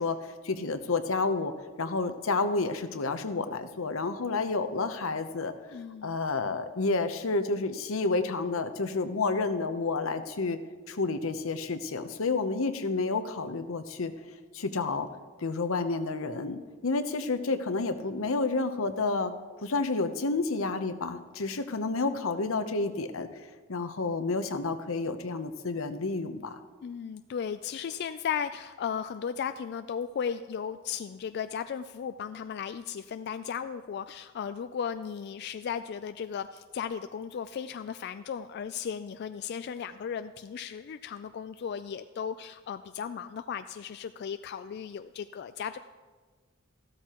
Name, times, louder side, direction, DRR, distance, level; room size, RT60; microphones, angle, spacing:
voice 1, 0.0-1.5 1.8-5.5 6.0-10.6 10.9-14.1 14.5-15.1 15.4-19.3 19.6-23.3 23.7-26.6, left 3 dB, 85° left, 9 dB, 0.8 m, -30 dB
voice 2, 5.7-6.6 26.8-45.8, left 7 dB, 55° left, 10 dB, 0.3 m, -36 dB
14.5 x 13.0 x 3.0 m, 1.4 s
head